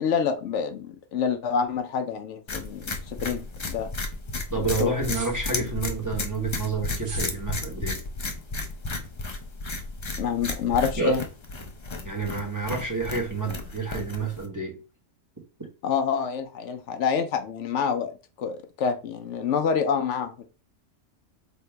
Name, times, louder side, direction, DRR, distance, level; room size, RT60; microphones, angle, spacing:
voice 1, 0.0-3.9 4.6-4.9 10.2-11.2 15.8-20.4, left 6 dB, 75° left, 7 dB, 0.9 m, -27 dB
sound 1, 2.5-14.5, left 3 dB, 35° left, 0.4 m, -33 dB
voice 2, 4.5-8.0 11.0-11.2 12.0-14.8, right 4 dB, 15° right, -1 dB, 0.9 m, -29 dB
sound 2, 5.0-5.7 6.9-7.4, right 2 dB, 55° right, 1.4 m, -37 dB
3.5 x 2.8 x 4.4 m, 0.33 s
omnidirectional pair, 1.3 m